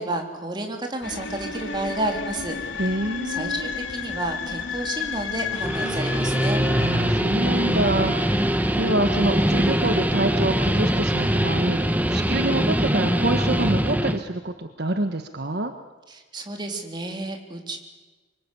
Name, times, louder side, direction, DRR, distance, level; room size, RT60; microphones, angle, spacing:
voice 1, 0.0-2.6 3.3-6.6 16.1-17.8, right 2 dB, 25° right, 3 dB, 3.6 m, -31 dB
sound 1, 1.0-12.0, left 5 dB, 85° left, 2.5 m, -34 dB
voice 2, 2.8-3.7 6.7-15.7, right 1 dB, 60° right, 7 dB, 1.4 m, -27 dB
Guitar, 5.4-14.2, equal, 10° right, 1.3 m, -23 dB
25.5 x 24.0 x 8.5 m, 1.2 s
head